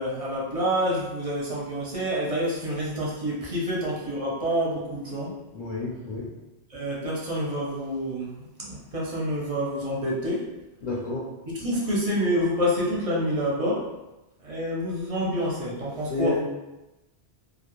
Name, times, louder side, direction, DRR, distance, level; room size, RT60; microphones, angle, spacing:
voice 1, 0.0-5.3 6.7-8.3 8.6-10.5 11.5-13.8 14.4-16.4, equal, 45° right, -5 dB, 0.5 m, -27 dB
voice 2, 5.5-6.3 10.8-11.3 16.1-16.4, left 3 dB, 50° left, -7 dB, 0.5 m, -29 dB
2.3 x 2.0 x 3.0 m, 1.0 s
omnidirectional pair, 1.1 m